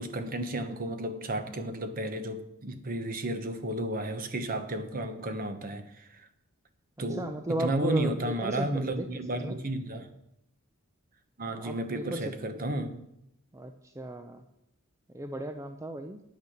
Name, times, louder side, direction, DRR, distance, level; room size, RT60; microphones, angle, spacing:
voice 1, 0.0-6.3 7.0-10.1 11.4-13.0, right 1 dB, 40° right, 9 dB, 1.1 m, -33 dB
voice 2, 7.1-9.6 11.6-12.8 13.5-14.4 15.1-16.2, right 1 dB, 15° right, 7 dB, 0.5 m, -36 dB
9.3 x 8.7 x 6.5 m, 0.81 s
head